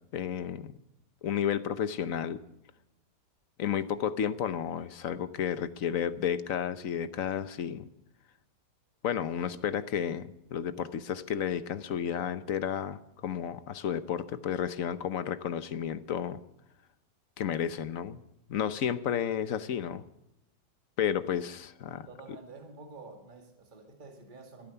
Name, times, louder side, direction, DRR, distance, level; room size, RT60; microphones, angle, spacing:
voice 1, 0.1-0.7 1.2-2.4 3.6-7.9 9.0-16.4 17.4-18.2 18.5-20.0 21.0-22.1, left 8 dB, 60° left, 1.1 m, -32 dB
voice 2, 21.9-24.7, right 3 dB, 30° right, 2.0 m, -49 dB
27.0 x 9.1 x 5.8 m
omnidirectional pair, 1.9 m